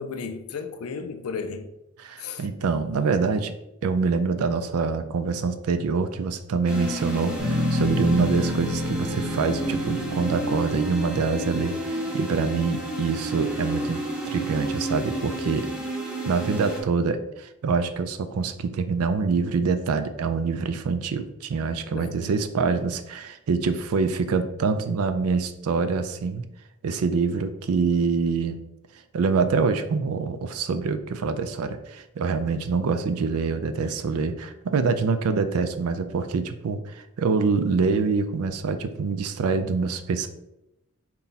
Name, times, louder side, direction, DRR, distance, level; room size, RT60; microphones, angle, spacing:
voice 1, 0.0-1.7 2.2-2.5 21.9-22.3, left 5 dB, 80° left, 0.4 m, -34 dB
voice 2, 2.0-3.5 3.8-15.7 16.2-26.4 26.8-28.6 29.1-40.3, right 4 dB, 85° right, 0.4 m, -25 dB
sound 1, 6.7-16.8, right 1 dB, 5° right, 0.7 m, -31 dB
Bass guitar, 7.4-11.8, left 2 dB, 55° right, 0.9 m, -30 dB
4.1 x 2.2 x 3.9 m
head